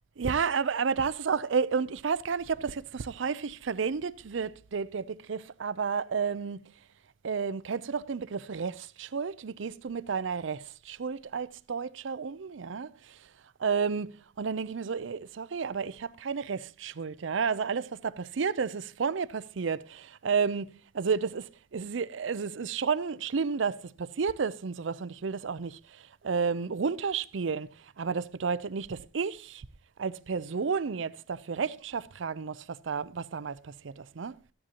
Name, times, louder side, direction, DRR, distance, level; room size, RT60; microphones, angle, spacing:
voice 1, 0.2-6.6 7.2-12.9 13.6-14.1 14.4-25.8 26.2-27.7 28.0-29.7 30.0-34.3, right 5 dB, 80° right, 0.5 m, -31 dB
14.0 x 10.0 x 2.9 m
head